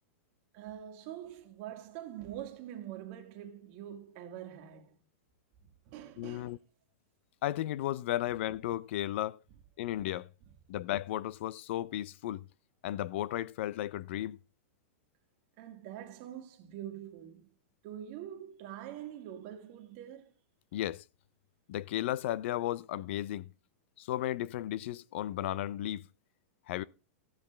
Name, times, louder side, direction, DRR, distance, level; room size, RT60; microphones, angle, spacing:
voice 1, 0.5-4.9 5.9-6.6 15.6-17.5 17.8-20.3, right 11 dB, 40° right, 1.6 m, -44 dB
voice 2, 6.2-6.6 7.4-9.4 9.8-10.3 10.7-12.4 12.8-14.4 20.7-21.0 21.7-23.5 24.0-26.0 26.7-26.8, left 13 dB, 55° left, 0.4 m, -34 dB
14.5 x 7.7 x 3.3 m
supercardioid pair, 150°, 8 cm